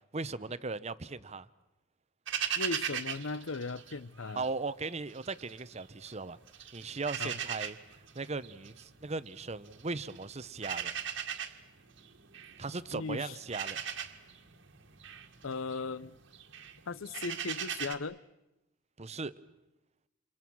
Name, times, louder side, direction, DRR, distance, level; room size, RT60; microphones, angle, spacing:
voice 1, 0.1-1.5 4.3-6.4 6.7-7.8 8.1-10.9 12.6-13.8 19.0-19.3, right 3 dB, 30° right, 0.9 m, -38 dB
sound 1, 2.3-4.5 4.8-6.1 6.5-17.9, right 9 dB, 60° right, 1.8 m, -39 dB
voice 2, 2.5-4.4 7.2-7.3 12.9-13.4 15.4-16.2 16.9-18.2, left 3 dB, 75° left, 0.8 m, -37 dB
29.5 x 28.0 x 6.2 m
head